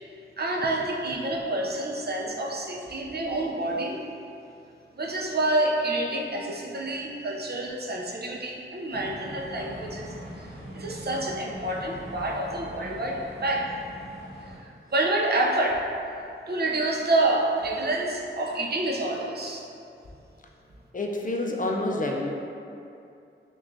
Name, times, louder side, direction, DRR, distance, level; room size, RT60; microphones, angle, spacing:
voice 1, 0.4-4.0 5.0-13.7 14.5-15.9 16.5-19.7, right 2 dB, 50° right, -1 dB, 0.5 m, -28 dB
sound 1, 8.9-14.6, equal, 65° right, 1.1 m, -42 dB
voice 2, 20.9-22.3, left 2 dB, 40° left, 0 dB, 0.4 m, -28 dB
6.0 x 2.3 x 2.6 m, 2.6 s
wide cardioid pair, 70°, 21 cm